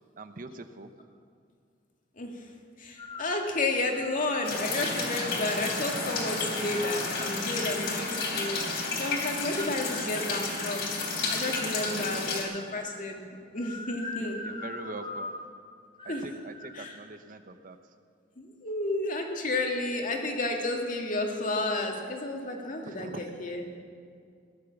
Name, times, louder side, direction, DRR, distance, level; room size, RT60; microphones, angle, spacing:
voice 1, 0.2-0.9 11.9-12.4 14.2-15.3 16.0-17.8 22.9-23.2, right 2 dB, 50° right, 9 dB, 0.8 m, -43 dB
voice 2, 2.2-2.5 2.8-8.6 8.9-10.9 11.3-13.2 13.5-14.4 16.1-16.3 16.7-17.0 18.4-23.6, left 2 dB, 45° left, 2 dB, 2.2 m, -31 dB
sound 1, 3.0-3.4 3.9-4.5 5.2-6.2 6.7-8.6 9.2-12.0 12.5-13.1 13.6-15.5 16.0-16.3 16.5-17.0, left 2 dB, 30° left, 1.9 m, -42 dB
sound 2, 4.4-12.4, left 3 dB, 70° left, 3.3 m, -32 dB
17.0 x 11.5 x 7.1 m, 2.3 s
head